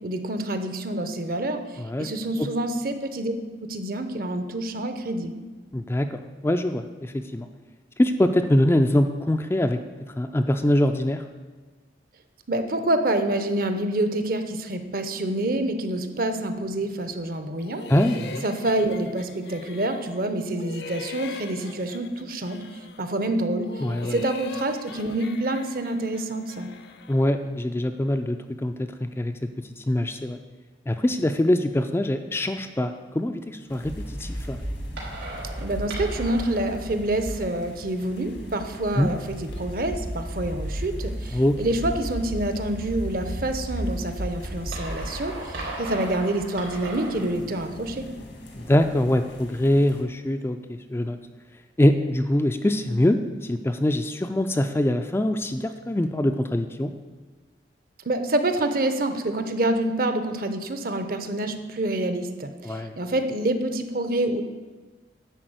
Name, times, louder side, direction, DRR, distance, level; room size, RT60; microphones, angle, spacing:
voice 1, 0.0-3.3 3.6-5.4 12.5-17.8 18.4-22.6 23.0-26.7 35.6-48.1 58.0-64.4, right 1 dB, 50° right, 8 dB, 0.7 m, -27 dB
voice 2, 1.8-2.1 2.4-2.5 5.7-7.5 8.0-9.8 10.2-11.2 17.9-18.4 23.8-24.2 27.1-29.3 29.8-30.4 30.9-34.6 39.0-39.1 41.3-41.6 48.5-50.6 50.9-51.2 51.8-56.9 62.6-62.9, left 1 dB, 15° left, 7 dB, 0.3 m, -23 dB
sound 1, 17.6-20.2 20.5-23.1 23.5-27.3, left 3 dB, 60° left, 0.6 m, -41 dB
sound 2, 33.7-50.0, left 1 dB, 85° left, 1.9 m, -47 dB
sound 3, 33.8-47.2, right 1 dB, 90° right, 3.3 m, -34 dB
10.0 x 4.3 x 7.8 m, 1.4 s
head